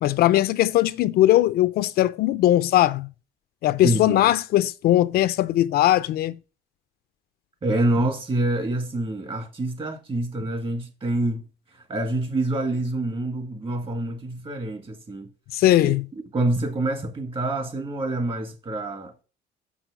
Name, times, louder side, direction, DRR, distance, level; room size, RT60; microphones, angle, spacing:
voice 1, 0.0-3.1 3.6-6.4 15.5-16.0, left 14 dB, 65° left, 0.5 m, -20 dB
voice 2, 3.8-4.3 7.6-11.5 11.7-15.3 15.8-16.0 16.3-19.2, right 2 dB, 30° right, 2.0 m, -26 dB
6.2 x 6.1 x 5.0 m
cardioid pair, 110°, 17 cm